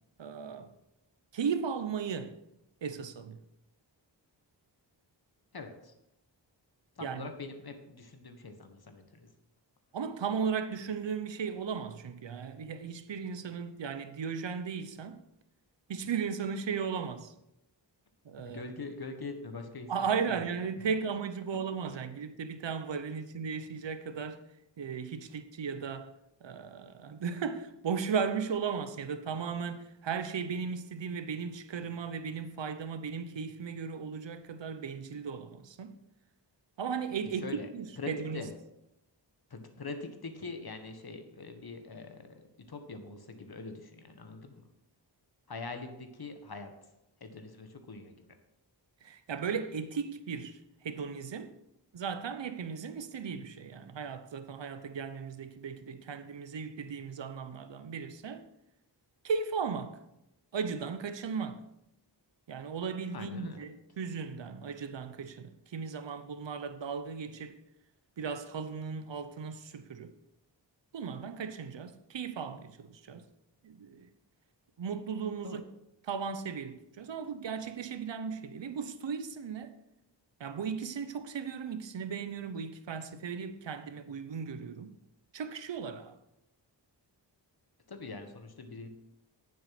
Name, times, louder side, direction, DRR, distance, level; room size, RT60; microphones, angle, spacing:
voice 1, 0.2-0.7 1.3-2.4 2.8-3.4 7.0-7.3 9.9-15.2 15.9-17.3 18.2-18.6 19.9-24.4 24.8-26.1 26.4-35.9 36.8-37.5 37.7-38.4 49.0-51.5 51.9-58.4 59.2-60.0 60.5-61.6 62.5-67.6 68.2-70.1 70.9-73.2 73.6-74.1 74.8-75.6 76.0-79.7 80.4-84.9 85.3-86.2, right 6 dB, 80° right, 0.9 m, -36 dB
voice 2, 5.5-5.9 6.9-9.3 18.4-20.4 20.9-21.0 21.9-22.0 37.3-37.7 38.0-38.5 39.5-44.6 45.5-46.9 47.2-48.3 63.1-63.6 75.4-75.6 87.9-88.9, left 3 dB, 55° left, 1.7 m, -43 dB
9.4 x 7.6 x 6.0 m
wide cardioid pair, 65°, 43 cm